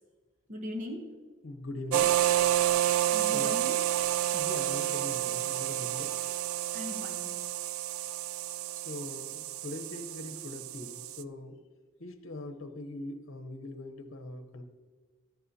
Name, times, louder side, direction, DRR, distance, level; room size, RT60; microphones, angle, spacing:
voice 1, 0.5-1.3 3.1-3.8 6.7-7.5, left 1 dB, 40° right, 4 dB, 1.0 m, -39 dB
voice 2, 1.4-2.2 3.3-3.5 4.3-6.1 8.8-11.6 12.0-14.6, left 2 dB, 70° left, 7 dB, 0.9 m, -41 dB
sound 1, 1.9-11.2, right 13 dB, 90° right, 0.3 m, -30 dB
13.0 x 11.0 x 2.8 m, 1.4 s
head